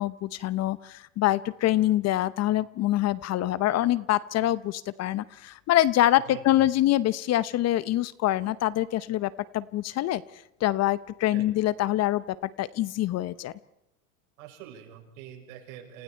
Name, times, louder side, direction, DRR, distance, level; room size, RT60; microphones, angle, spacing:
voice 1, 0.0-10.2 10.6-13.5, left 14 dB, 35° left, 17 dB, 0.9 m, -25 dB
voice 2, 6.3-6.6 11.3-11.4 14.4-16.0, right 10 dB, 70° right, 3 dB, 6.9 m, -45 dB
29.0 x 29.0 x 4.5 m, 0.85 s
hypercardioid pair, 110°, 43 cm